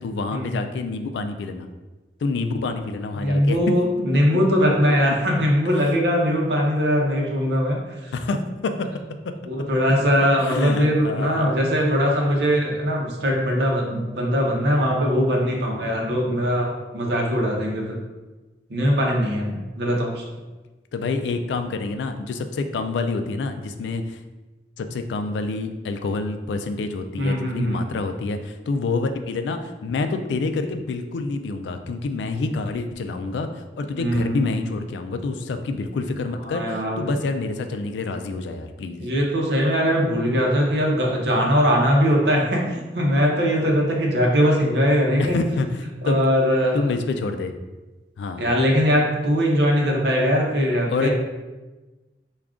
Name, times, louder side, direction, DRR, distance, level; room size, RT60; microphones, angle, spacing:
voice 1, 0.0-1.7 2.2-3.6 4.9-5.1 5.8-6.0 8.1-8.9 9.2-9.3 10.4-11.6 20.9-24.2 24.8-39.1 45.2-46.2 46.7-47.5 48.2-48.5 50.9-51.1, left 3 dB, 80° left, 7 dB, 0.3 m, -27 dB
voice 2, 3.2-7.8 9.5-18.0 18.7-20.2 27.2-27.8 34.0-34.7 36.4-37.0 39.0-45.4 46.0-46.8 48.4-51.1, equal, 65° right, -1 dB, 0.7 m, -21 dB
3.5 x 2.3 x 3.6 m, 1.2 s
head